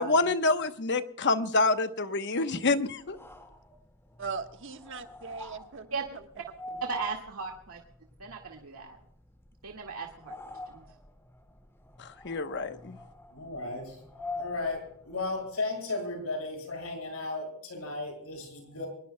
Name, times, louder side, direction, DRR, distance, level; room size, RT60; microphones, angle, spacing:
voice 1, 0.0-3.2 12.0-13.0, left 3 dB, 55° left, 9 dB, 1.0 m, -27 dB
sound 1, 3.0-15.5, left 2 dB, 10° left, 1.9 m, -46 dB
voice 2, 4.2-6.2 6.7-7.0, right 5 dB, 60° right, 7 dB, 1.4 m, -40 dB
voice 3, 6.8-7.8 8.2-9.0 9.6-10.8, right 5 dB, 90° right, 1 dB, 1.9 m, -37 dB
voice 4, 13.3-14.0 14.4-18.9, left 2 dB, 75° left, 3 dB, 7.0 m, -35 dB
24.0 x 20.0 x 2.2 m, 0.67 s
head